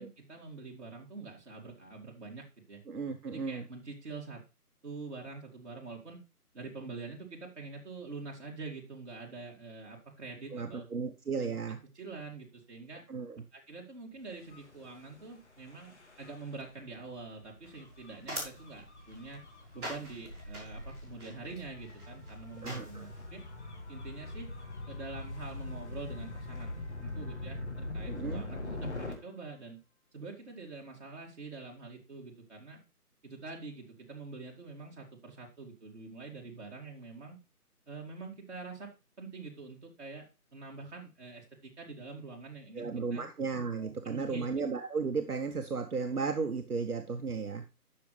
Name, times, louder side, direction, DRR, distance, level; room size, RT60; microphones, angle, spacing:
voice 1, 0.0-2.8 3.3-4.4 4.8-6.2 6.5-10.9 11.4-13.0 13.5-19.4 19.7-23.4 23.9-24.5 24.9-29.8 30.1-32.8 33.2-37.4 37.9-38.9 39.2-40.2 40.5-43.3 43.8-44.5, right 3 dB, 45° right, -2 dB, 2.4 m, -45 dB
voice 2, 2.9-3.7 10.5-11.8 13.1-13.4 22.6-23.0 28.1-28.4 42.7-47.6, right 4 dB, 70° right, 6 dB, 1.2 m, -34 dB
Gull seagull / Waves surf / Siren, 14.4-29.1, left 2 dB, 45° left, 2.1 m, -43 dB
sound 1, 17.6-23.2, right 1 dB, 5° right, 1.9 m, -45 dB
11.5 x 6.5 x 3.2 m, 0.28 s
figure-of-eight pair, 175°, 46 cm